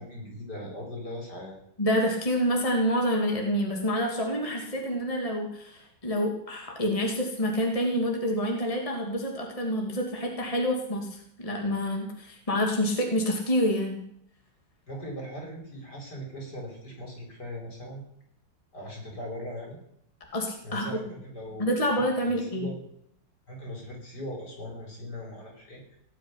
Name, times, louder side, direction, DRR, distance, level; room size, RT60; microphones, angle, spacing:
voice 1, 0.0-1.6 14.9-18.0 18.7-19.8 20.6-21.8 22.2-22.9 23.5-26.0, equal, 60° left, 0 dB, 5.9 m, -39 dB
voice 2, 1.8-14.0 20.3-20.9 21.6-22.7, equal, 20° left, 1 dB, 2.7 m, -27 dB
17.5 x 7.4 x 10.0 m, 0.70 s
omnidirectional pair, 2.0 m